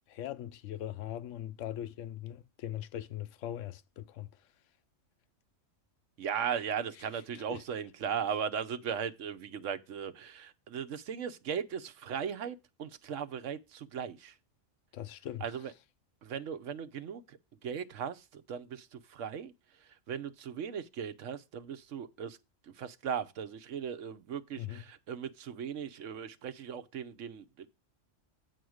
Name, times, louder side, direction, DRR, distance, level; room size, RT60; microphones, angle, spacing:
voice 1, 0.1-4.3 7.5-7.6 14.9-15.4 24.6-24.8, left 12 dB, 80° left, 1.0 m, -40 dB
voice 2, 6.2-14.4 15.4-15.7 16.2-22.4 22.6-27.7, right 7 dB, 75° right, 1.1 m, -38 dB
8.3 x 4.3 x 6.3 m
omnidirectional pair, 1.3 m